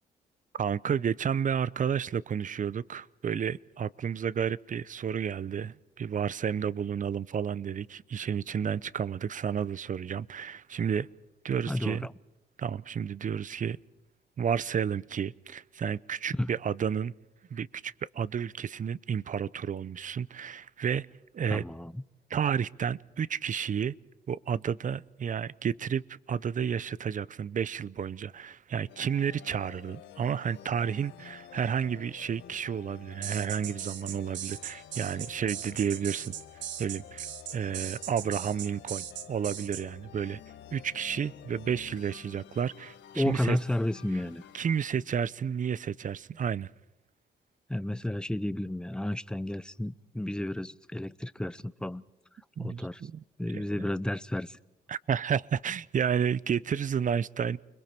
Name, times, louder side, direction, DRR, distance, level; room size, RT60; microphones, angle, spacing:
voice 1, 0.5-11.1 11.4-12.1 12.6-13.8 14.4-17.1 17.5-21.1 21.3-21.6 22.3-23.9 24.3-36.3 36.8-37.3 37.5-40.4 40.7-43.6 44.5-46.7 52.6-53.2 53.5-53.6 54.9-57.6, right 7 dB, 45° right, 0.7 m, -31 dB
voice 2, 11.7-12.1 16.3-16.5 21.5-22.0 43.2-44.5 47.7-52.0 52.6-53.0 53.4-54.6, left 1 dB, 5° left, 0.7 m, -32 dB
sound 1, 28.9-44.9, left 10 dB, 85° left, 1.3 m, -50 dB
sound 2, 33.2-39.8, right 10 dB, 85° right, 1.3 m, -39 dB
29.5 x 22.0 x 4.5 m
cardioid pair, 80°, 18 cm